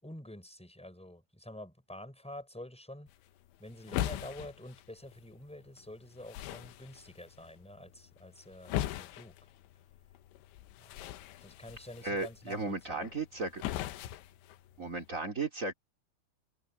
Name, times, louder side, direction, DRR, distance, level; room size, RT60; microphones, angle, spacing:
voice 1, 0.0-3.1 3.6-9.5 10.8-11.0 11.4-13.1, left 1 dB, ahead, 5.4 m, -48 dB
sound 1, 3.1-15.1, left 13 dB, 75° left, 3.2 m, -41 dB
voice 2, 12.0-13.6 14.8-15.7, right 3 dB, 30° right, 1.5 m, -35 dB
omnidirectional pair, 5.6 m